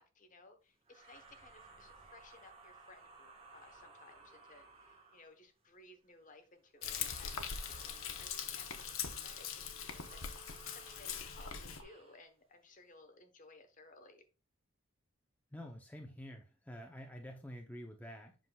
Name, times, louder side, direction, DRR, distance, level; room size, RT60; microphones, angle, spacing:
voice 1, 0.0-7.9 8.2-9.5 9.8-14.2, left 3 dB, 40° left, 1.0 m, -60 dB
sound 1, 0.8-5.4 6.8-12.2, right 4 dB, 30° right, 1.4 m, -58 dB
Frying (food), 6.8-11.8, left 7 dB, 75° left, 0.8 m, -42 dB
voice 2, 15.5-18.4, equal, 5° left, 0.6 m, -48 dB
7.5 x 5.8 x 2.3 m
head